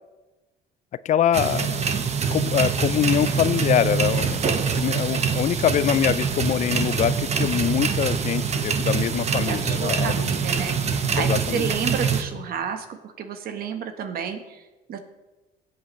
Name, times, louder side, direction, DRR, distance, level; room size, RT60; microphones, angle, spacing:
voice 1, 1.0-2.0 2.3-10.2 11.2-11.7, left 10 dB, 45° left, 17 dB, 0.4 m, -24 dB
sound 1, 1.3-12.2, right 6 dB, 40° right, 1.1 m, -24 dB
voice 2, 9.5-15.0, right 7 dB, 60° right, 7 dB, 1.3 m, -31 dB
18.5 x 8.0 x 3.2 m, 1.1 s
cardioid pair, 110°, 17 cm